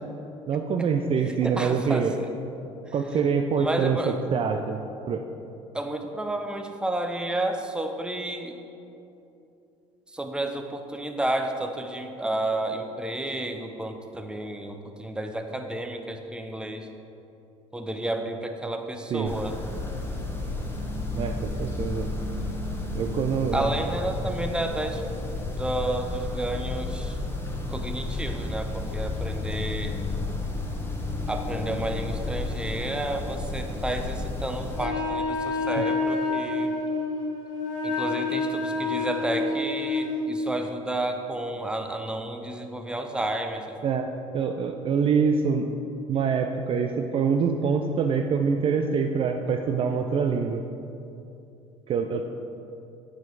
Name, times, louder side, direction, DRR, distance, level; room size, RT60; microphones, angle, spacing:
voice 1, 0.5-2.1 2.9-5.2 19.1-19.3 21.2-22.1 22.9-23.7 35.8-35.9 43.8-45.7 46.1-50.6 51.9-52.3, right 6 dB, 35° right, 5 dB, 0.4 m, -25 dB
voice 2, 1.2-2.3 2.9-3.0 3.6-4.2 5.7-8.6 10.1-16.9 17.7-19.6 23.5-25.0 25.5-27.2 27.7-30.0 31.3-36.7 37.8-43.8, right 1 dB, 5° right, 5 dB, 0.7 m, -31 dB
sound 1, 19.2-34.9, left 2 dB, 15° left, 1.1 m, -32 dB
Wind instrument woodwind instrument, 34.7-40.3, left 3 dB, 80° left, 1.4 m, -28 dB
8.7 x 5.8 x 4.7 m, 2.8 s
figure-of-eight pair, 60°, 17 cm